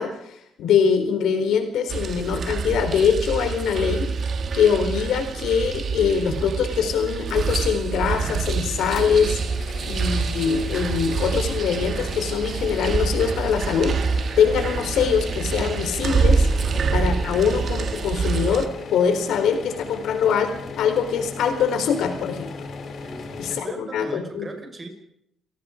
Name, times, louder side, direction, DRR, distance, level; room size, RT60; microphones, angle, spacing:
voice 1, 0.0-4.1 4.5-9.4 9.8-14.0 14.4-16.5 16.9-22.5 23.4-24.4, left 7 dB, 80° left, 7 dB, 3.9 m, -23 dB
sound 1, 1.9-18.7, right 5 dB, 50° right, 1.8 m, -26 dB
sound 2, 9.0-23.6, left 5 dB, 55° left, 3.6 m, -38 dB
voice 2, 23.0-24.9, right 2 dB, 30° right, 5 dB, 5.5 m, -38 dB
28.5 x 18.0 x 5.1 m, 0.75 s
cardioid pair, 90°, 0 cm